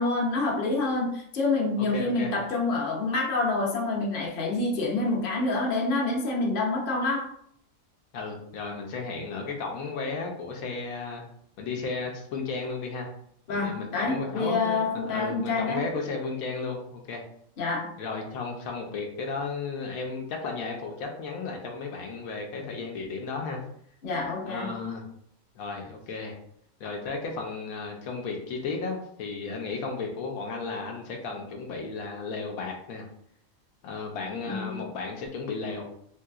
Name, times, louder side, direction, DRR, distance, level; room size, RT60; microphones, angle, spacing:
voice 1, 0.0-7.3 13.5-15.8 17.6-17.9 24.0-24.7 34.5-34.8, left 3 dB, 45° left, -2 dB, 0.8 m, -27 dB
voice 2, 1.8-2.3 8.1-11.2 11.6-13.1 13.5-17.2 18.0-23.6 24.4-25.0 25.6-26.4 26.8-33.0 33.8-35.9, left 4 dB, 80° left, 2 dB, 1.0 m, -34 dB
3.3 x 2.8 x 2.3 m, 0.67 s
omnidirectional pair, 1.5 m